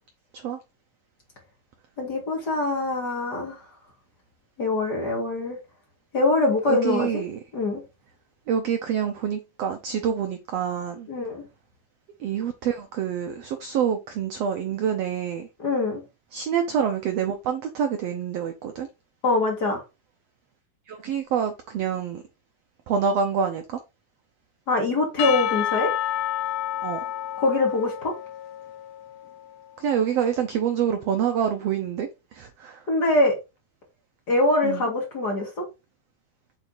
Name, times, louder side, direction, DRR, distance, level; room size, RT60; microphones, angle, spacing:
voice 1, 2.0-3.6 4.6-5.6 6.1-7.1 7.5-7.8 11.1-11.4 15.6-16.0 19.2-19.8 24.7-25.9 27.4-28.1 32.9-33.3 34.3-35.5, left 2 dB, 35° left, 2.3 m, -23 dB
voice 2, 6.6-7.4 8.5-11.1 12.2-15.5 16.3-18.9 20.9-22.2 22.9-23.8 26.8-27.0 29.8-32.8 34.6-34.9, right 8 dB, 70° right, 1.5 m, -27 dB
Percussion / Church bell, 25.2-29.5, left 12 dB, 75° left, 1.8 m, -29 dB
7.8 x 4.3 x 3.9 m
omnidirectional pair, 3.8 m